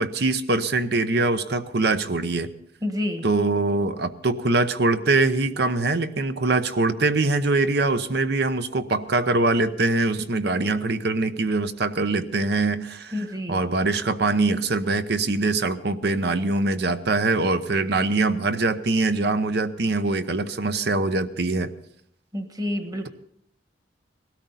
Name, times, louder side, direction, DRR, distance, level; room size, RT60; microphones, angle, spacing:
voice 1, 0.0-2.5 3.2-21.7, right 3 dB, 65° right, 10 dB, 0.8 m, -23 dB
voice 2, 2.8-3.2 13.1-13.6 22.3-23.1, left 1 dB, 20° right, 7 dB, 1.3 m, -28 dB
19.0 x 13.0 x 4.1 m, 0.70 s
head